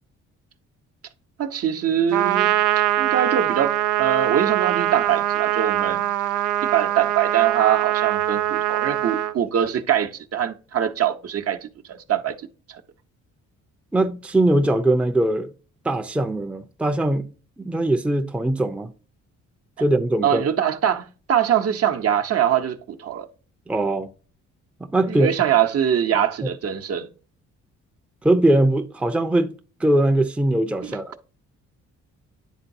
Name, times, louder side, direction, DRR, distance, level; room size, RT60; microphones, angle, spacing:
voice 1, 1.4-2.5 3.0-6.0 6.7-12.3 12.7-12.8 20.2-23.3 25.1-27.1 30.8-31.0, right 9 dB, 55° right, 0.9 m, -23 dB
Trumpet, 2.1-9.3, right 13 dB, 90° right, 0.6 m, -22 dB
voice 2, 13.9-15.5 15.8-17.3 17.6-18.9 19.8-20.4 23.7-24.1 24.9-25.3 28.2-29.5 29.8-31.2, right 1 dB, 5° right, 0.6 m, -21 dB
10.0 x 3.9 x 2.7 m
cardioid pair, 90°, 30 cm